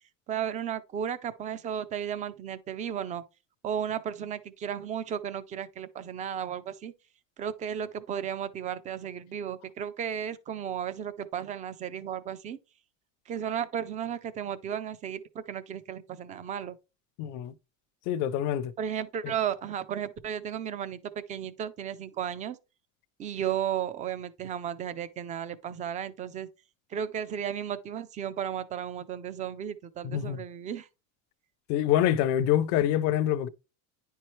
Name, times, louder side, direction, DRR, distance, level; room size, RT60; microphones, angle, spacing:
voice 1, 0.3-3.2 3.6-6.9 7.4-12.6 13.3-16.8 18.8-22.6 23.2-26.5 26.9-30.9, right 9 dB, 20° right, 0.3 m, -34 dB
voice 2, 17.2-17.5 18.1-18.7 19.2-19.3 30.0-30.4 31.7-33.5, left 11 dB, 45° left, 0.6 m, -26 dB
9.9 x 4.4 x 3.1 m
cardioid pair, 155°, 40 cm